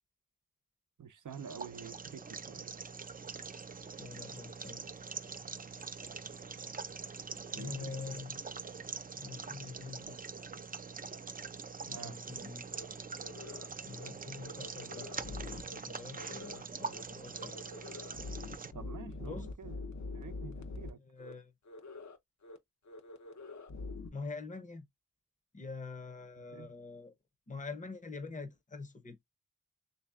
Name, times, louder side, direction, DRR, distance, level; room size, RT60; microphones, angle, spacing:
voice 1, 1.0-2.7 7.5-8.0 11.9-12.2 18.7-19.8 20.1-21.0 26.4-26.7, right 7 dB, 75° right, 0.6 m, -48 dB
sound 1, 1.3-18.7, right 5 dB, 30° right, 0.4 m, -44 dB
voice 2, 4.0-4.9 7.6-8.4 9.1-10.2 11.9-12.6 13.8-17.6 19.2-19.5 21.1-21.5 24.1-24.9 25.5-27.1 27.5-29.2, left 4 dB, 25° left, 0.7 m, -45 dB
sound 2, 12.7-12.9 13.2-13.7 13.9-14.1 14.4-15.8 16.1-16.6 16.9-17.0 17.3-20.9 21.2-21.3 21.7-22.2 22.4-22.6 22.9-24.1, left 3 dB, 65° left, 0.8 m, -45 dB
3.3 x 2.7 x 3.5 m
wide cardioid pair, 65°, 31 cm